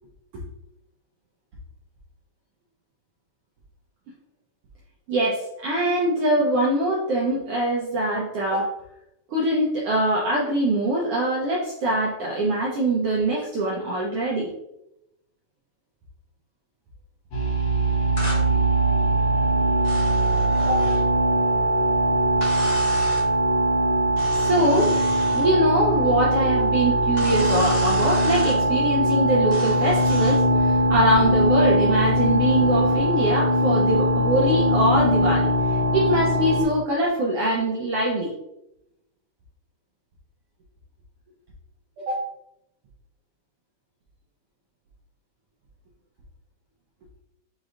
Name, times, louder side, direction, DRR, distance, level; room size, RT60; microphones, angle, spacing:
voice 1, 5.1-8.7 9.3-14.5 20.6-20.9 24.3-24.9 25.3-38.3 42.0-42.3, right 1 dB, 80° right, -3 dB, 1.3 m, -23 dB
sound 1, 17.3-36.6, right 1 dB, 75° left, 1.3 m, -21 dB
sound 2, 18.2-18.4 19.8-21.1 22.4-23.3 24.2-25.5 27.2-28.6 29.5-30.4, equal, 40° left, 0.8 m, -34 dB
6.2 x 3.1 x 2.5 m, 0.85 s
omnidirectional pair, 3.5 m